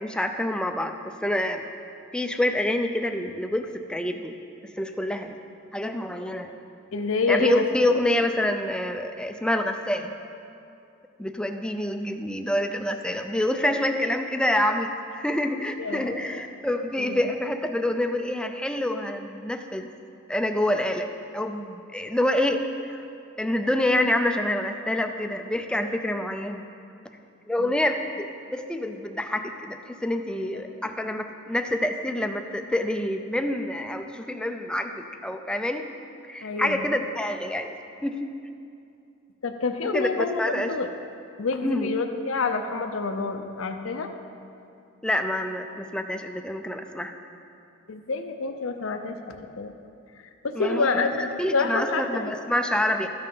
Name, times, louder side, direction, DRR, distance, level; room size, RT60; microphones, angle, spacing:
voice 1, 0.0-0.9 1.2-1.6 2.1-4.3 4.6-5.4 5.7-6.5 7.3-10.1 11.2-19.9 20.3-21.1 21.3-23.0 23.4-26.7 27.5-35.9 36.2-38.3 39.8-40.1 40.4-40.7 41.6-41.9 45.0-47.1 50.5-51.0 51.4-53.1, left 1 dB, 5° left, 6 dB, 0.4 m, -27 dB
voice 2, 6.9-7.6 15.8-16.4 17.0-17.3 27.6-27.7 30.4-30.6 36.4-37.0 39.4-40.9 41.4-44.1 47.9-49.7 50.4-51.2 51.5-52.3, left 4 dB, 75° left, 6 dB, 0.6 m, -28 dB
12.5 x 6.7 x 5.4 m, 2.6 s
head